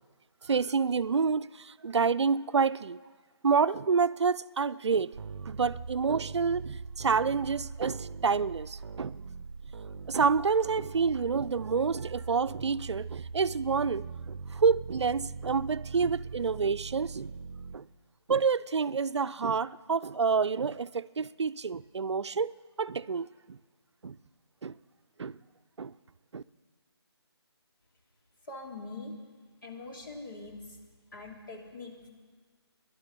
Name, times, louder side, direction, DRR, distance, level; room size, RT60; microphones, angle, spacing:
voice 1, 0.5-3.0 3.4-5.1 5.5-9.2 10.1-17.3 17.7-17.8 18.3-23.6 24.0-24.2 24.6-24.7 25.2-25.4 25.8-25.9 26.3-26.4, right 5 dB, 85° right, 0.4 m, -28 dB
sound 1, 5.1-17.8, right 5 dB, 55° right, 0.7 m, -41 dB
voice 2, 28.5-29.1 29.6-30.8 31.1-32.1, left 3 dB, 50° left, 2.9 m, -43 dB
19.5 x 11.0 x 5.3 m
figure-of-eight pair, 165°, 14 cm